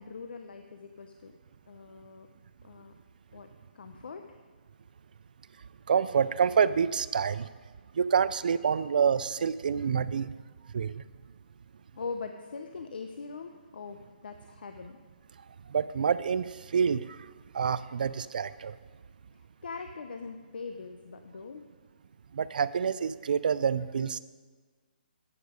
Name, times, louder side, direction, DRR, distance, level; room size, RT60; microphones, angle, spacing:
voice 1, 0.0-1.3 1.7-2.3 2.6-2.9 3.3-3.5 3.7-4.3 11.9-15.0 19.6-21.6, left 4 dB, 75° left, 6 dB, 0.8 m, -41 dB
voice 2, 5.9-7.5 7.9-10.3 10.7-11.0 15.7-17.3 17.5-18.7 22.3-24.2, right 7 dB, 60° right, 15 dB, 0.4 m, -27 dB
12.0 x 8.2 x 5.1 m, 1.4 s
hypercardioid pair, 175°, 5 cm